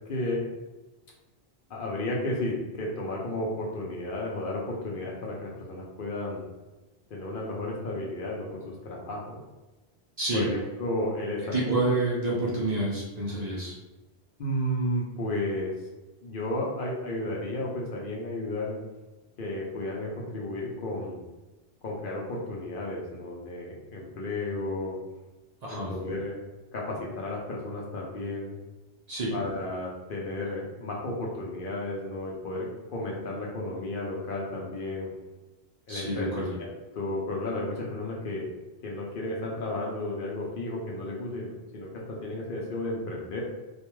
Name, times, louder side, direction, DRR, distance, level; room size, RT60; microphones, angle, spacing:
voice 1, 0.1-0.4 1.7-6.4 7.1-9.4 10.3-12.0 14.4-15.7 16.2-18.8 19.4-21.2 21.8-25.0 25.7-26.4 26.7-28.6 29.3-35.1 35.9-36.7 36.9-38.4 38.8-43.4, left 1 dB, 60° left, -2 dB, 0.7 m, -33 dB
voice 2, 11.5-13.7 25.6-25.9 29.1-29.3 35.9-36.5, right 2 dB, 50° right, -5 dB, 0.6 m, -28 dB
2.4 x 2.2 x 3.0 m, 1.1 s
omnidirectional pair, 1.1 m